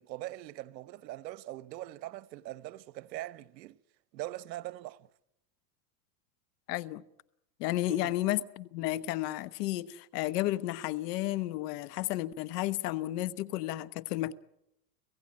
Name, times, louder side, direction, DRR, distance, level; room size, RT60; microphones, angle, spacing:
voice 1, 0.0-3.8 4.1-5.1 7.9-8.1, right 16 dB, 80° right, 1.0 m, -42 dB
voice 2, 6.7-7.0 7.6-14.3, left 15 dB, 70° left, 1.2 m, -32 dB
26.5 x 16.5 x 8.6 m
supercardioid pair, 115°, 50 cm